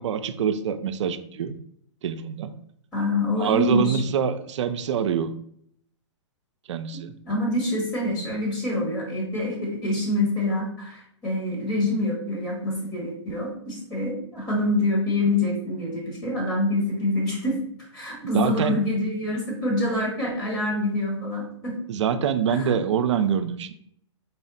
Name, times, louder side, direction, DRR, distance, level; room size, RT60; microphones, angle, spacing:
voice 1, 0.0-1.6 2.0-2.5 3.4-5.3 6.7-7.2 18.3-18.8 21.9-23.7, right 7 dB, 70° right, 11 dB, 0.4 m, -25 dB
voice 2, 2.9-4.0 6.9-17.6 17.9-21.8 22.5-22.7, left 1 dB, 25° left, -3 dB, 1.2 m, -26 dB
4.2 x 2.0 x 3.9 m, 0.68 s
hypercardioid pair, 135°, 16 cm